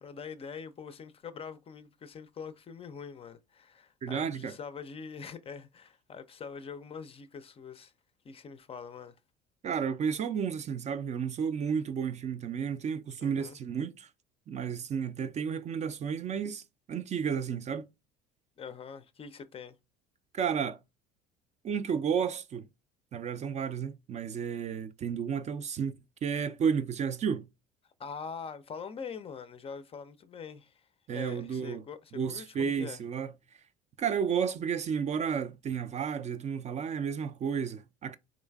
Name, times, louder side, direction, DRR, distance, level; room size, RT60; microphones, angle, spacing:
voice 1, 0.0-7.9 8.2-9.1 13.2-13.6 18.6-19.8 28.0-33.0, left 6 dB, 25° left, 0.4 m, -44 dB
voice 2, 4.0-4.5 9.6-14.1 14.5-17.8 20.3-20.8 21.6-22.7 23.1-25.9 26.2-27.5 31.1-31.8 32.1-33.3 34.0-38.2, right 7 dB, 35° right, 0.4 m, -32 dB
3.8 x 3.1 x 2.3 m
hypercardioid pair, 65°, 21 cm